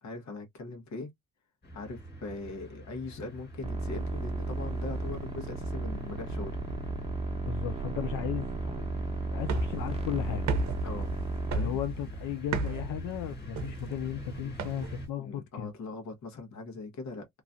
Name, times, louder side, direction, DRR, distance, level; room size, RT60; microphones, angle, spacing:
voice 1, 0.0-1.1 1.7-6.6 10.8-11.2 11.5-11.8 15.2-17.3, left 3 dB, 65° left, 1.3 m, -41 dB
sound 1, 1.6-15.1, right 1 dB, 35° left, 1.5 m, -46 dB
sound 2, 3.6-11.5, right 2 dB, 20° right, 0.9 m, -34 dB
voice 2, 7.4-8.9 9.3-10.5 11.5-15.7, left 10 dB, 90° left, 0.5 m, -35 dB
sound 3, 9.4-15.1, right 2 dB, 65° right, 0.7 m, -35 dB
3.0 x 2.4 x 2.5 m
cardioid pair, 90°, 30 cm